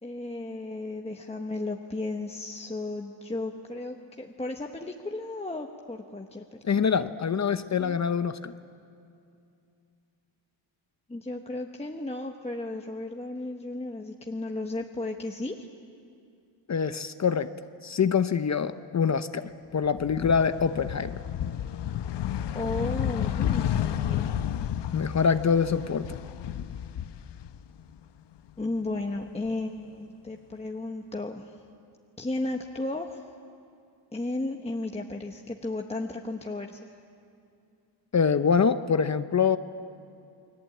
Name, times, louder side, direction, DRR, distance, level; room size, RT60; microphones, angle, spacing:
voice 1, 0.0-6.6 11.1-15.7 22.5-24.3 28.6-31.6 32.2-33.3 34.1-36.9, left 2 dB, 15° left, 2 dB, 1.0 m, -34 dB
voice 2, 6.6-8.5 16.7-17.5 17.8-21.1 24.9-26.2 38.1-39.6, left 6 dB, 35° left, 11 dB, 0.7 m, -25 dB
sound 1, 19.8-28.0 28.3-29.5, left 10 dB, 65° left, 0.8 m, -31 dB
29.5 x 21.5 x 8.5 m, 2.5 s
wide cardioid pair, 135°, 46 cm